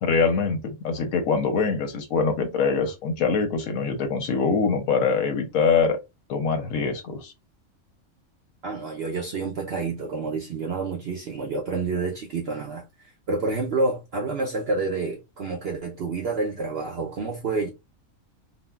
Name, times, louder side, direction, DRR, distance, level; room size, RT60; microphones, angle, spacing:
voice 1, 0.0-6.0 6.3-7.3, left 5 dB, 90° left, 1.1 m, -24 dB
voice 2, 8.6-17.7, right 3 dB, 60° right, 0.7 m, -28 dB
3.7 x 2.1 x 2.3 m
omnidirectional pair, 1.4 m